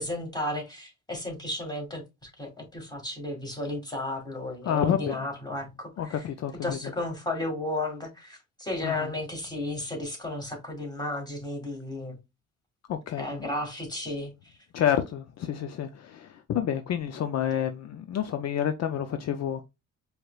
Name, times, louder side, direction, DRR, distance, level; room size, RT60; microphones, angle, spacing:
voice 1, 0.0-6.2 6.6-12.2 13.2-14.6, left 1 dB, 15° left, 2.0 m, -34 dB
voice 2, 4.6-5.3 6.0-6.9 8.8-9.1 12.9-13.3 14.7-19.7, left 9 dB, 60° left, 0.5 m, -29 dB
4.6 x 3.3 x 2.4 m
cardioid pair, 90°, 30 cm